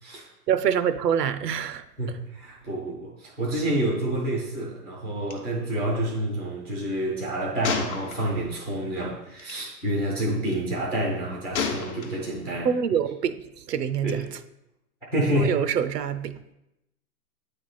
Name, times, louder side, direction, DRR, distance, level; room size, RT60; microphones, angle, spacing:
voice 1, 0.5-1.8 12.6-13.4 13.7-14.3 15.4-16.4, right 8 dB, 85° right, 0.6 m, -25 dB
voice 2, 2.0-12.7 14.0-14.2 15.1-15.5, right 1 dB, 5° left, 0.4 m, -28 dB
Gunshot gunfire, 5.3-5.4 5.6-5.8 7.6-8.6 9.4-9.6 11.5-12.5, left 6 dB, 50° left, 0.9 m, -31 dB
8.5 x 3.4 x 4.1 m
hypercardioid pair, 130°, 47 cm